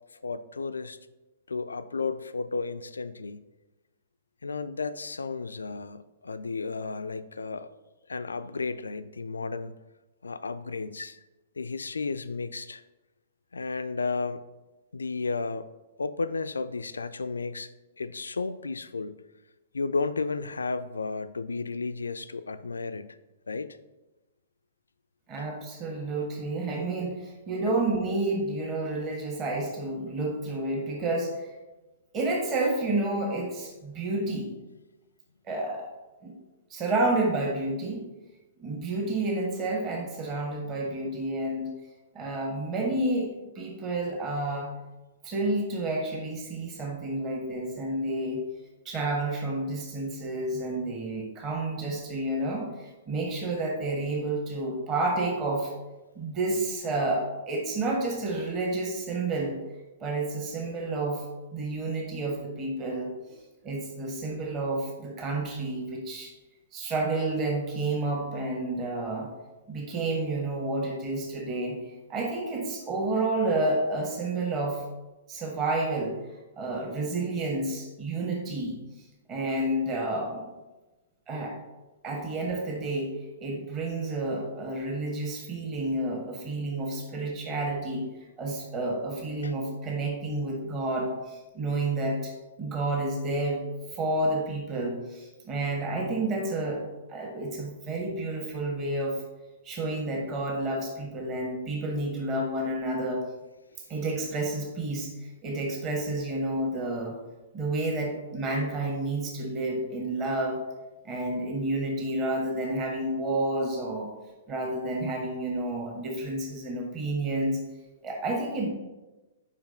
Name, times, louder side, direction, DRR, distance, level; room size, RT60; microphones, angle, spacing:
voice 1, 0.2-1.0 1.5-3.4 4.4-7.7 8.1-9.7 10.2-11.2 11.6-12.8 13.5-14.4 14.9-15.7 16.0-17.7 18.0-19.2 19.7-23.2 23.5-23.8 25.4-25.5 89.4-89.5, left 4 dB, 70° left, 13 dB, 0.3 m, -33 dB
voice 2, 25.3-31.5 32.1-34.5 35.5-35.9 36.2-36.3 36.7-38.0 38.6-41.7 42.1-44.7 45.2-48.4 48.8-55.7 56.1-59.5 60.0-61.2 61.5-63.4 63.6-66.3 66.7-69.3 69.7-74.8 75.3-76.2 76.6-78.8 79.3-80.5 81.3-81.6 82.0-83.1 83.4-88.0 88.4-92.3 92.6-93.6 93.9-99.2 99.6-103.2 103.9-107.2 107.5-110.6 111.0-114.1 114.5-117.6 118.0-118.7, right 2 dB, 25° right, -1 dB, 1.4 m, -30 dB
5.1 x 5.0 x 5.1 m, 1.1 s
figure-of-eight pair, 110°, 0 cm